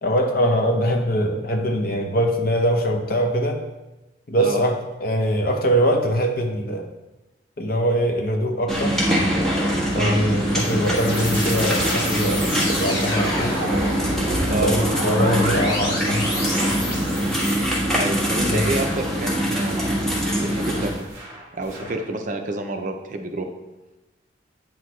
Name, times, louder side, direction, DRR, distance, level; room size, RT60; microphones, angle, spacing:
voice 1, 0.0-3.6 4.3-6.9 7.6-9.0 9.9-13.6 14.6-16.3 18.5-18.6, equal, 45° left, 3 dB, 0.9 m, -22 dB
sound 1, 8.7-20.9, equal, ahead, 1.4 m, -23 dB
sound 2, 8.7-12.4 13.3-14.8 15.3-17.5 18.2-22.1, right 1 dB, 15° right, 1.8 m, -41 dB
sound 3, 10.2-17.8, equal, 25° left, 2.4 m, -29 dB
voice 2, 17.9-19.8 20.4-21.0 21.5-23.5, right 2 dB, 40° right, 4 dB, 0.6 m, -28 dB
8.5 x 6.1 x 3.2 m, 1.1 s
head